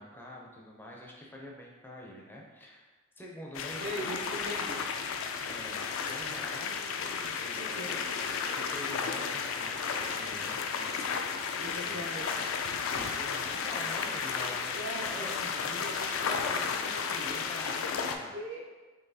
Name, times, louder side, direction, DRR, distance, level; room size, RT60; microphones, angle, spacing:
voice 1, 0.0-2.9 3.2-4.1 5.4-6.8 7.1-11.2 11.5-12.0 12.9-15.3 15.6-18.3, left 1 dB, 10° left, -2 dB, 0.4 m, -46 dB
sound 1, 3.5-18.2, left 6 dB, 75° left, 0.3 m, -33 dB
voice 2, 3.8-4.9 7.5-8.0 11.5-12.3 14.7-15.8 18.0-18.8, equal, 70° right, 0 dB, 0.6 m, -40 dB
3.9 x 2.9 x 2.7 m, 1.2 s
head